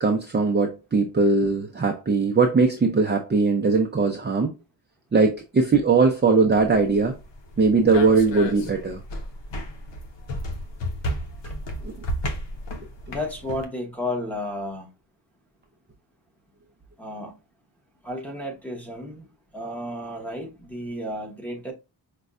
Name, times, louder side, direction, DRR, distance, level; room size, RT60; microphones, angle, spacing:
voice 1, 0.0-4.5 5.1-7.2 7.6-9.0 11.8-11.9, right 4 dB, 25° right, 0.5 m, -20 dB
sound 1, 6.5-13.6, left 1 dB, 75° left, 0.8 m, -33 dB
voice 2, 13.1-14.9 17.0-17.4 18.0-19.3 19.5-21.7, left 1 dB, 5° left, 1.0 m, -32 dB
5.2 x 2.3 x 2.4 m
wide cardioid pair, 100°, 43 cm